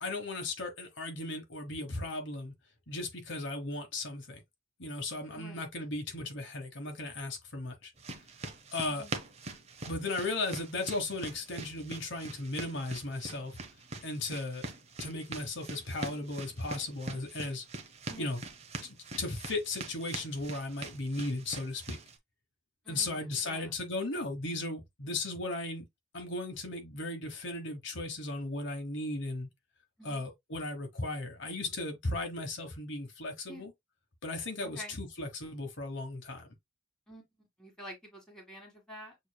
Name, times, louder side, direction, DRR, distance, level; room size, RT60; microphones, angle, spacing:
voice 1, 0.0-2.5 2.9-4.4 4.8-7.9 8.7-9.0 9.9-13.6 14.0-14.7 15.0-17.6 18.2-18.4 18.8-22.0 22.9-25.8 26.1-29.5 30.0-33.7 34.2-36.5, left 2 dB, 60° left, 1.2 m, -36 dB
sound 1, 8.0-22.2, right 2 dB, 30° right, 0.7 m, -43 dB
voice 2, 22.8-23.7 30.0-30.3 33.5-33.6 34.6-35.0 37.1-37.3 37.6-39.2, equal, 5° left, 1.7 m, -48 dB
6.5 x 3.0 x 2.2 m
head